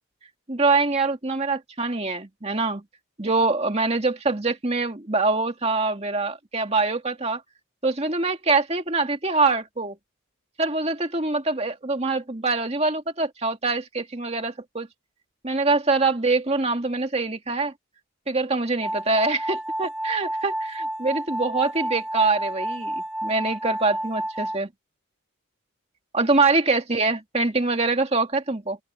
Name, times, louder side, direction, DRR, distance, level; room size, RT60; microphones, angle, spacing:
voice 1, 0.5-2.8 3.2-7.4 7.8-10.0 10.6-14.9 15.4-17.7 18.3-22.9 23.2-24.7 26.1-28.8, right 3 dB, 30° right, 2.1 m, -24 dB
sound 1, 18.8-24.6, right 1 dB, 5° right, 3.3 m, -30 dB
open air
head